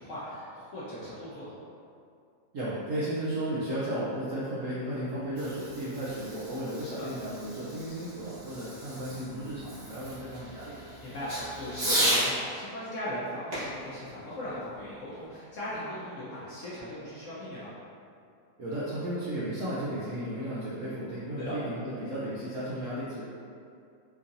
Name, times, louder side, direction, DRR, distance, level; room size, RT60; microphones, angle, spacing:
voice 1, 0.0-1.5 6.8-7.1 11.0-17.7 21.4-21.5, equal, 60° left, -10 dB, 0.8 m, -38 dB
voice 2, 2.5-10.8 18.6-23.2, right 1 dB, 75° right, -9 dB, 0.7 m, -34 dB
Fireworks, 5.2-12.3 13.5-15.1, right 1 dB, 45° right, 1.4 m, -34 dB
4.5 x 2.7 x 2.5 m, 2.5 s
omnidirectional pair, 2.0 m